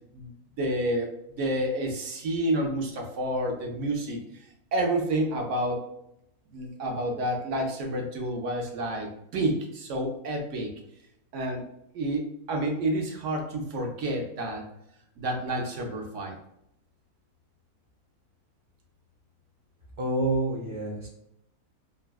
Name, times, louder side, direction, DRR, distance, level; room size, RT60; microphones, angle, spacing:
voice 1, 0.1-4.2 4.7-5.9 6.5-10.7 11.3-11.6 11.9-14.7 15.2-16.4, right 1 dB, 65° right, 2 dB, 0.8 m, -29 dB
voice 2, 20.0-21.1, right 2 dB, 30° right, -4 dB, 0.6 m, -28 dB
3.3 x 2.1 x 2.3 m, 0.79 s
omnidirectional pair, 1.6 m